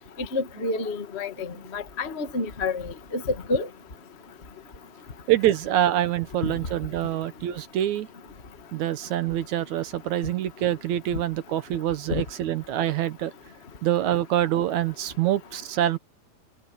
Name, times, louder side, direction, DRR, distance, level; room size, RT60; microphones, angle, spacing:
voice 1, 0.3-1.5 1.7-2.8 3.1-3.2 3.5-3.7 12.1-12.2, left 3 dB, 30° left, 1.1 m, -28 dB
voice 2, 5.3-8.1 8.7-13.3 13.8-16.0, right 12 dB, 65° right, 2.1 m, -25 dB
omnidirectional pair, 4.1 m